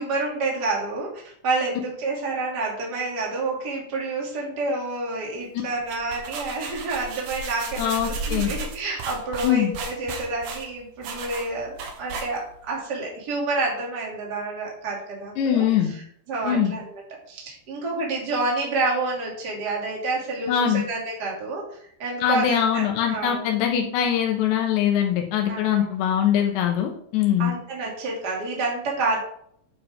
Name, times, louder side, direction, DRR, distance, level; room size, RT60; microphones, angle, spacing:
voice 1, 0.0-16.0 16.3-17.0 17.3-23.4 25.5-25.9 27.4-29.2, right 3 dB, 25° right, -3 dB, 2.7 m, -29 dB
sound 1, 5.7-12.7, right 3 dB, 65° right, 2.7 m, -34 dB
voice 2, 7.8-8.5 9.4-9.7 15.4-15.9 16.4-16.7 20.5-20.8 22.2-27.5, left 9 dB, 90° left, 1 dB, 3.4 m, -22 dB
9.5 x 8.5 x 3.7 m, 0.65 s
omnidirectional pair, 4.9 m